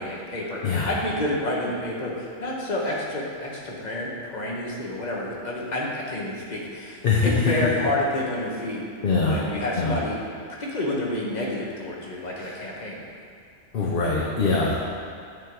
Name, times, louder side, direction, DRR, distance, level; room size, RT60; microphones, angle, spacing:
voice 1, 0.0-8.8 9.1-10.2 10.6-13.0, left 1 dB, 35° left, -3 dB, 1.1 m, -29 dB
voice 2, 7.0-7.7 9.0-9.4 9.8-9.9 12.4-12.6 13.7-14.7, left 4 dB, 50° left, -4 dB, 0.8 m, -23 dB
9.6 x 3.8 x 4.6 m, 2.3 s
omnidirectional pair, 1.4 m